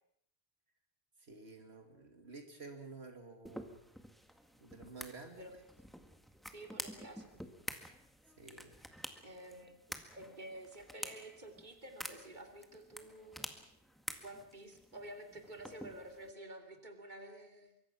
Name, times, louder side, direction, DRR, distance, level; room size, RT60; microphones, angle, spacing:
voice 1, 1.2-3.8 4.6-5.6 8.4-8.7, right 3 dB, 80° right, 4 dB, 2.9 m, -51 dB
sound 1, 3.4-16.3, equal, ahead, 1.8 m, -49 dB
voice 2, 6.5-7.4 9.2-13.5 14.2-17.7, right 1 dB, 45° right, 4 dB, 3.1 m, -51 dB
24.5 x 23.5 x 6.1 m, 0.71 s
omnidirectional pair, 1.1 m